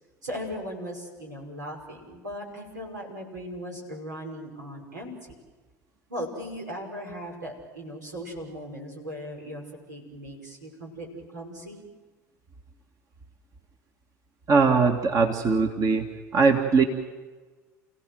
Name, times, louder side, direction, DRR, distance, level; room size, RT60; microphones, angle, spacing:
voice 1, 0.2-5.3 6.1-11.8, equal, 85° right, 0 dB, 5.7 m, -38 dB
voice 2, 14.5-16.1 16.3-16.8, right 4 dB, 40° right, 4 dB, 2.2 m, -20 dB
30.0 x 16.5 x 7.8 m, 1.4 s
hypercardioid pair, 75°, 9 cm